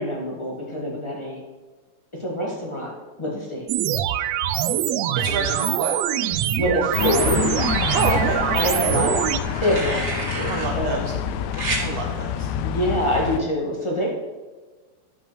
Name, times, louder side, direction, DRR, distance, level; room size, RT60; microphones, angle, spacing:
voice 1, 0.0-1.4 2.2-2.9 3.2-3.7 5.2-5.6 6.6-7.4 8.5-9.1 9.6-11.0 12.6-14.1, equal, 25° left, -3 dB, 0.6 m, -25 dB
sound 1, 3.7-9.4, right 12 dB, 85° right, 1.5 m, -23 dB
voice 2, 5.2-6.0 7.9-8.9 10.5-11.0 11.8-12.5, right 4 dB, 65° right, 0 dB, 1.8 m, -27 dB
sound 2, 6.3-7.0 7.5-8.2 9.3-10.7 11.5-11.8 13.2-13.4, right 2 dB, 35° right, 2.3 m, -31 dB
sound 3, 6.9-13.4, left 9 dB, 80° left, 1.8 m, -27 dB
11.5 x 5.4 x 6.1 m, 1.3 s
omnidirectional pair, 3.6 m